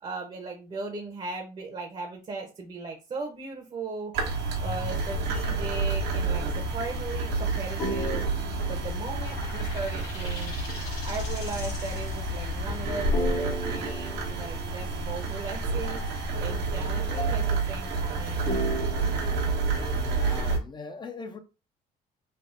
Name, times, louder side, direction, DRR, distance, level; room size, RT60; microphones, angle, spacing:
voice 1, 0.0-4.1 4.6-8.3 8.7-10.5 11.0-18.5, right 3 dB, 35° right, 0.7 m, -37 dB
sound 1, 4.1-20.6, right 3 dB, 85° right, 1.0 m, -29 dB
sound 2, 7.8-10.0 13.1-15.4 15.8-20.0, equal, 50° left, 0.8 m, -37 dB
sound 3, 9.0-16.4, left 3 dB, 85° left, 1.2 m, -45 dB
voice 2, 19.9-21.4, left 4 dB, 25° left, 0.4 m, -40 dB
3.4 x 2.4 x 2.5 m
cardioid pair, 110°, 17 cm